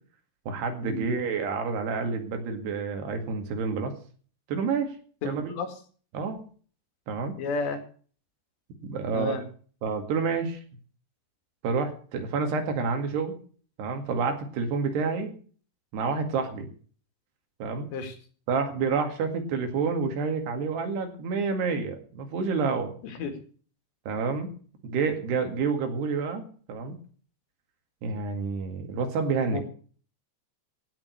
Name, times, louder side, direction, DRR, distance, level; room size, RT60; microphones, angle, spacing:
voice 1, 0.5-3.9 4.5-4.9 5.2-5.5 6.1-6.4 7.1-7.4 8.8-9.4 9.8-10.6 11.6-13.4 13.8-15.3 15.9-16.7 17.6-17.9 18.5-23.0 24.1-24.5 24.8-27.0 28.0-29.6, right 5 dB, 70° right, 5 dB, 4.0 m, -29 dB
voice 2, 5.2-5.7 7.4-7.8 9.1-9.4 17.9-18.1 23.0-23.3 29.5-29.6, left 4 dB, 75° left, 6 dB, 4.2 m, -31 dB
16.0 x 6.3 x 8.3 m, 0.43 s
omnidirectional pair, 5.1 m